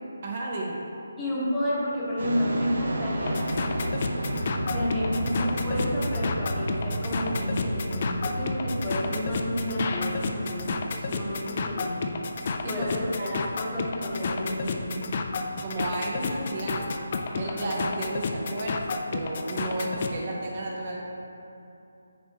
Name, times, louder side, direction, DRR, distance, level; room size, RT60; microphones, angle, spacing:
voice 1, 0.2-0.8 12.6-13.6 14.0-14.4 14.9-15.0 15.6-16.9 17.3-21.0, right 2 dB, 35° right, -2 dB, 0.7 m, -33 dB
voice 2, 1.2-3.4 4.7-12.1 12.6-15.0 17.3-17.7, equal, 10° left, -9 dB, 0.9 m, -31 dB
sound 1, 2.2-18.9, right 1 dB, 75° right, 0.8 m, -34 dB
sound 2, 3.2-20.2, left 4 dB, 35° left, 0.3 m, -31 dB
10.0 x 3.3 x 3.0 m, 2.8 s
hypercardioid pair, 170°, 0 cm